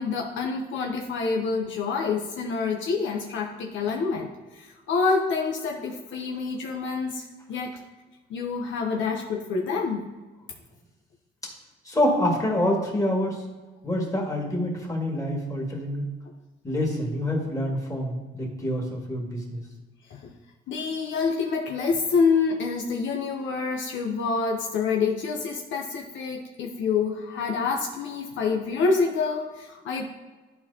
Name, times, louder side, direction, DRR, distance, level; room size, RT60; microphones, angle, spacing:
voice 1, 0.0-7.7 8.3-10.1 20.1-20.3 20.7-30.0, left 4 dB, 75° left, 1 dB, 0.9 m, -27 dB
voice 2, 11.9-13.4 13.8-16.0 16.6-19.6, left 1 dB, 15° left, -2 dB, 2.1 m, -26 dB
11.5 x 4.4 x 2.8 m, 1.2 s
cardioid pair, 90°, 20 cm